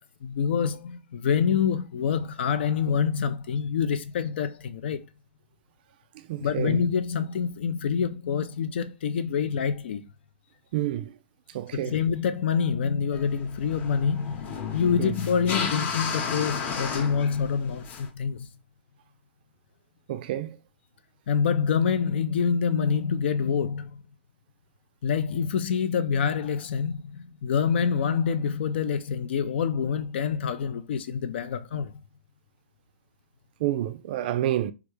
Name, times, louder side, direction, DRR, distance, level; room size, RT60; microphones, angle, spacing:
voice 1, 0.2-5.0 6.4-10.0 11.7-18.5 21.3-24.0 25.0-32.0, left 6 dB, 65° left, 0.4 m, -26 dB
voice 2, 6.3-6.8 10.7-11.1 11.5-12.0 15.0-15.1 20.1-20.6 33.6-34.7, right 13 dB, 50° right, 0.4 m, -28 dB
sound 1, 13.1-18.1, left 6 dB, 25° left, 0.8 m, -33 dB
3.4 x 2.4 x 3.1 m
hypercardioid pair, 130°, 6 cm